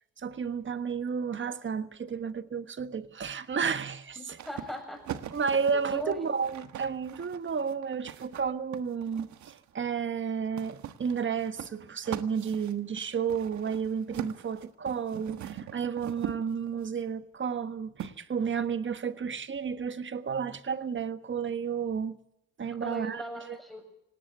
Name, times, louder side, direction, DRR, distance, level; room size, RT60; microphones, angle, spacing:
voice 1, 0.2-4.4 5.3-22.2 22.6-23.6, right 6 dB, 40° right, 1.4 m, -32 dB
voice 2, 4.2-5.0 5.7-6.2 22.8-24.0, equal, ahead, 7.1 m, -39 dB
sound 1, 4.4-9.7 10.6-16.9 18.0-18.1, right 10 dB, 70° right, 1.4 m, -41 dB
18.5 x 17.5 x 8.1 m
cardioid pair, 90°, 30 cm